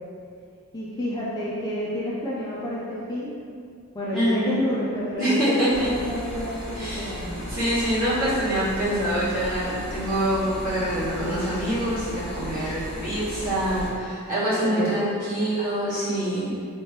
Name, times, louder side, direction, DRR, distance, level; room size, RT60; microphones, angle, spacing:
voice 1, 0.7-3.3 3.9-7.4 14.5-15.0, equal, 15° left, -7 dB, 0.4 m, -29 dB
voice 2, 4.1-4.6 5.2-5.9 6.7-7.2 7.5-16.5, right 1 dB, 40° right, -11 dB, 1.2 m, -25 dB
sound 1, 5.7-13.9, equal, ahead, 0.8 m, -35 dB
3.3 x 2.8 x 3.2 m, 2.3 s
head